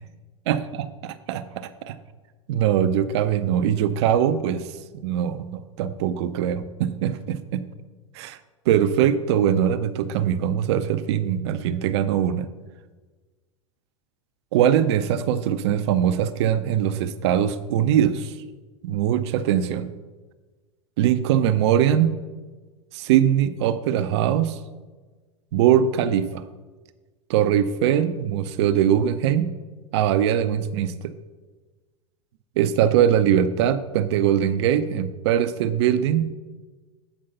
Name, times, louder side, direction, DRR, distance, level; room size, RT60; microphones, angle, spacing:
voice 1, 0.5-2.0 2.5-4.6 4.9-7.6 8.1-8.4 8.7-12.5 14.5-18.3 18.8-19.9 21.0-22.1 22.9-24.6 25.5-26.4 27.3-29.5 29.9-31.1 32.6-36.3, right 10 dB, 55° right, 12 dB, 0.5 m, -22 dB
8.0 x 5.2 x 5.5 m, 1.3 s
figure-of-eight pair, 85°, 16 cm